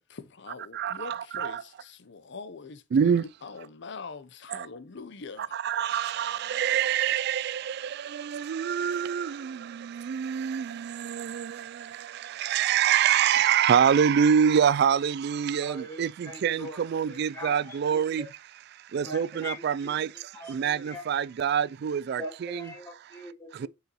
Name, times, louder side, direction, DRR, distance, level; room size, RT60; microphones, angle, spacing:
voice 1, 0.0-5.6, left 4 dB, 60° left, 0.7 m, -43 dB
voice 2, 0.8-1.5 2.9-3.2 5.6-7.6 8.3-9.6 10.1-10.6 11.1-11.4 12.4-16.1 16.4-18.2 18.9-20.1 20.5-22.7, right 8 dB, 55° right, 0.3 m, -25 dB
voice 3, 15.6-17.0 17.3-18.3 19.0-20.0 20.3-21.0 22.2-23.7, equal, 15° left, 1.8 m, -41 dB
6.4 x 4.9 x 3.0 m
head